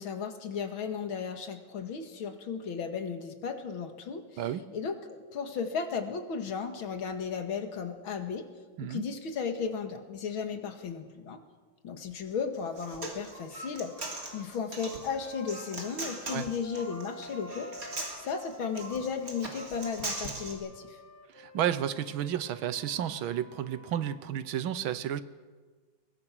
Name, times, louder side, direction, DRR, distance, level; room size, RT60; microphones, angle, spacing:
voice 1, 0.0-4.4 4.7-8.5 8.8-11.4 11.8-17.7 18.2-21.0, left 6 dB, 90° left, 7 dB, 2.6 m, -35 dB
Human voice, 12.5-20.5, right 2 dB, 45° right, 3.6 m, -40 dB
sound 1, 15.0-19.0 19.8-24.3, left 1 dB, 10° left, 1.0 m, -51 dB
voice 2, 21.4-25.2, right 10 dB, 85° right, 14 dB, 1.7 m, -32 dB
22.0 x 21.5 x 6.2 m, 1.4 s
omnidirectional pair, 2.2 m